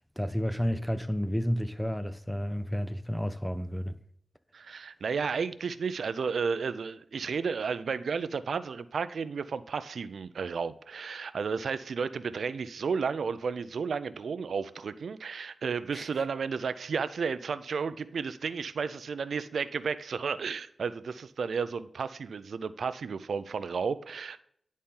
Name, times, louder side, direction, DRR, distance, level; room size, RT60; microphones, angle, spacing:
voice 1, 0.2-4.0 15.9-16.1, equal, ahead, 0.5 m, -31 dB
voice 2, 4.5-24.4, right 5 dB, 85° right, 0.4 m, -33 dB
10.5 x 4.2 x 3.7 m
cardioid pair, 45°, 0 cm